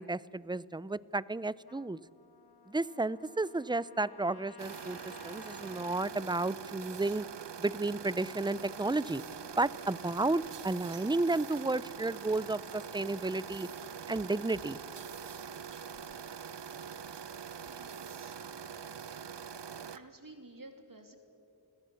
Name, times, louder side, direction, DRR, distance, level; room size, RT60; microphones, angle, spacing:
voice 1, 0.0-2.0 2.7-7.3 7.6-9.2 9.6-13.7 14.1-14.8, right 2 dB, 10° right, 20 dB, 0.5 m, -32 dB
Trumpet, 1.7-6.2, left 5 dB, 65° left, 1.5 m, -55 dB
sound 1, 4.6-20.0, right 7 dB, 90° right, 0.8 m, -44 dB
voice 2, 17.7-18.4 19.9-21.2, right 2 dB, 55° right, 5 dB, 3.1 m, -53 dB
30.0 x 20.5 x 7.1 m, 2.7 s
wide cardioid pair, 50°, 41 cm